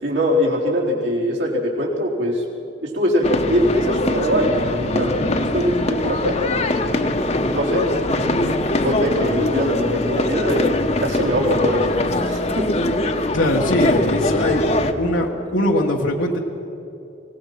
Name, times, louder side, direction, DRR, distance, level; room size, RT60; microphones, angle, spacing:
voice 1, 0.0-2.4 2.8-6.7 7.5-7.9 8.8-12.7, equal, 75° right, -3 dB, 4.2 m, -22 dB
sound 1, 3.2-14.9, left 1 dB, 35° left, 1.0 m, -22 dB
voice 2, 13.3-14.7 15.0-16.4, left 1 dB, 85° left, -1 dB, 1.6 m, -20 dB
25.0 x 17.5 x 6.0 m, 2.9 s
head